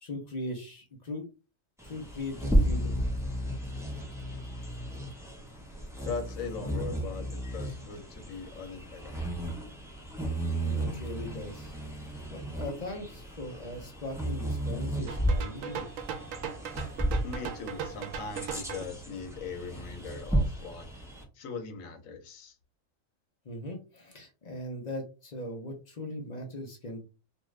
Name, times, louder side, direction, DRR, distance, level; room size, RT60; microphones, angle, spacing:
voice 1, 0.0-1.3 1.8-3.0 10.6-11.8 12.3-15.9 23.4-27.0, left 1 dB, 45° left, 3 dB, 0.5 m, -39 dB
Bird vocalization bird call bird song, 1.8-21.2, right 1 dB, 5° right, 0.5 m, -33 dB
voice 2, 6.0-9.3 17.2-21.0 21.3-22.6, left 5 dB, 80° left, 5 dB, 1.1 m, -40 dB
sound 1, 15.1-18.8, right 7 dB, 75° right, 0.9 m, -38 dB
2.6 x 2.4 x 3.1 m, 0.31 s
omnidirectional pair, 1.4 m